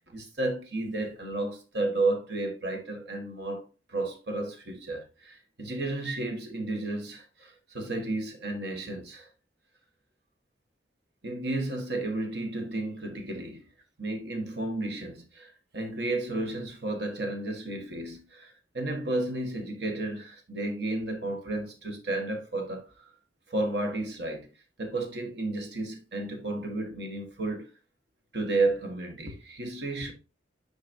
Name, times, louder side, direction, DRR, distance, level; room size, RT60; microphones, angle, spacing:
voice 1, 0.1-3.6 3.9-9.3 11.2-13.6 14.0-23.1 23.5-24.5 24.8-27.7 28.3-30.1, right 2 dB, 60° right, 1.4 m, -32 dB
9.5 x 4.0 x 2.7 m
head